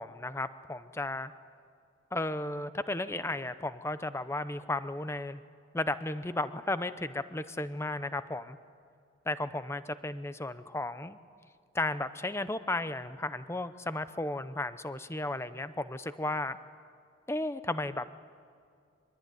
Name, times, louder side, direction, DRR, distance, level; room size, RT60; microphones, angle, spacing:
voice 1, 0.0-1.3 2.1-5.4 5.7-8.6 9.3-11.2 11.7-16.6 17.3-18.1, left 2 dB, 15° left, 13 dB, 0.7 m, -34 dB
23.5 x 22.0 x 9.4 m, 2.3 s
head